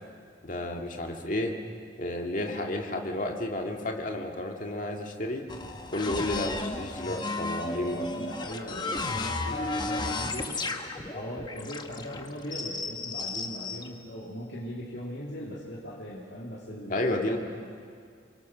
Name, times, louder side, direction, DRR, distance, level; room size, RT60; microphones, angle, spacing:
voice 1, 0.4-1.6 2.0-5.4 5.9-8.1 16.9-17.4, left 1 dB, 45° left, 2 dB, 2.2 m, -31 dB
sound 1, 5.5-13.9, left 3 dB, 25° left, 1.1 m, -34 dB
voice 2, 7.8-10.7 11.1-17.0 17.2-17.4, equal, 65° left, -6 dB, 3.0 m, -39 dB
28.0 x 23.0 x 6.3 m, 2.2 s
head